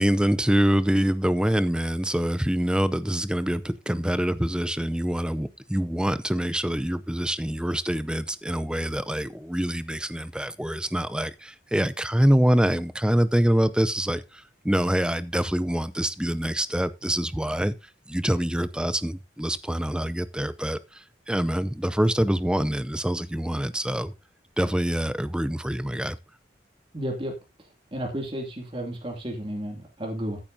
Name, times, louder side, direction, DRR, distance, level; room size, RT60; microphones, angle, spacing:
voice 1, 0.0-17.7 18.1-24.1 24.6-26.2, equal, 5° right, 0.5 m, -25 dB
voice 2, 26.9-30.4, equal, 30° right, 2.5 m, -33 dB
14.5 x 8.9 x 2.7 m
head